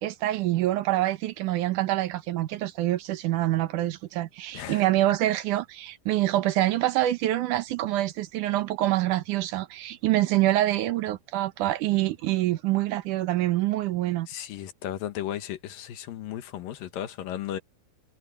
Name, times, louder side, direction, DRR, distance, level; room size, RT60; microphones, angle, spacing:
voice 1, 0.0-14.3, right 15 dB, 70° right, 2.4 m, -26 dB
voice 2, 4.5-4.9 14.3-17.6, left 11 dB, 85° left, 3.1 m, -35 dB
omnidirectional pair, 3.9 m